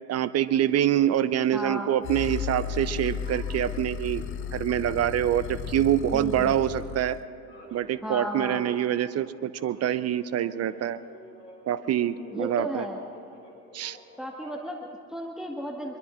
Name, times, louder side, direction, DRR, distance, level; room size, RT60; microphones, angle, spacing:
voice 1, 0.1-4.2 4.5-7.2 7.7-11.0 11.7-12.9 13.7-14.0, right 11 dB, 35° right, 15 dB, 0.6 m, -25 dB
voice 2, 1.5-1.9 6.1-6.5 8.0-8.6 12.3-13.0 14.2-16.0, equal, ahead, 0 dB, 1.6 m, -34 dB
sound 1, 2.0-7.2, left 8 dB, 30° left, 0.5 m, -34 dB
sound 2, 3.2-5.1 5.3-14.9, left 2 dB, 90° left, 2.9 m, -51 dB
25.5 x 22.5 x 2.5 m, 2.3 s
figure-of-eight pair, 65°, 46 cm